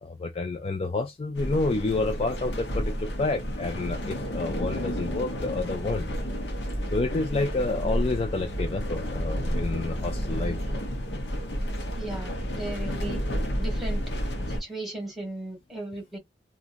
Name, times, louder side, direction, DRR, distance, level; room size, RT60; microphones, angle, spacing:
voice 1, 0.0-6.0 6.9-10.6, left 3 dB, 35° left, 0.4 m, -29 dB
sound 1, 1.3-14.6, equal, 80° left, 0.9 m, -31 dB
voice 2, 11.9-13.2 13.6-14.0 14.5-16.2, right 2 dB, ahead, 1.3 m, -36 dB
2.8 x 2.4 x 2.5 m
head